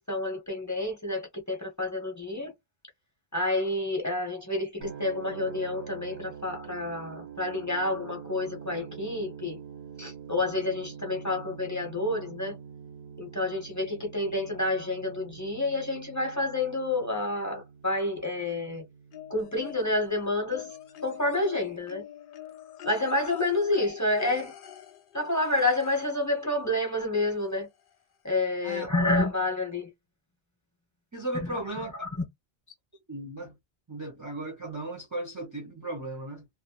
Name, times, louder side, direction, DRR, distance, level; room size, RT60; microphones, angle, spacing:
voice 1, 0.1-2.5 3.3-9.6 10.0-12.6 13.2-18.8 19.3-20.8 21.0-22.0 22.8-24.5 25.1-27.7 28.2-29.9 31.4-31.5 32.0-32.2, left 2 dB, 20° left, 0.8 m, -29 dB
sound 1, 4.8-20.7, right 7 dB, 80° right, 1.0 m, -45 dB
sound 2, 19.1-20.1 20.5-26.2 27.4-27.5 27.9-28.0, left 11 dB, 65° left, 0.7 m, -44 dB
voice 2, 31.1-31.9 33.1-33.6 33.9-36.5, right 1 dB, 25° right, 0.5 m, -36 dB
2.3 x 2.1 x 2.9 m
omnidirectional pair, 1.1 m